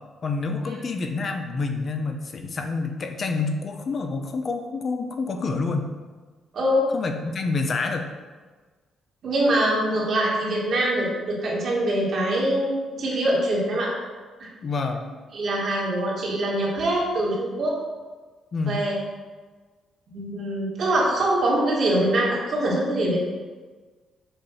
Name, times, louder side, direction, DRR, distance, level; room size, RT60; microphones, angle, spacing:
voice 1, 0.2-5.9 6.9-8.1 14.6-15.0 18.5-18.8, left 3 dB, 45° left, 5 dB, 0.7 m, -28 dB
voice 2, 6.5-6.9 9.2-13.9 14.4-14.5 15.3-17.8 18.6-19.0 20.1-23.2, right 1 dB, 60° right, -4 dB, 1.9 m, -23 dB
6.9 x 2.7 x 5.6 m, 1.4 s
cardioid pair, 90°, 0 cm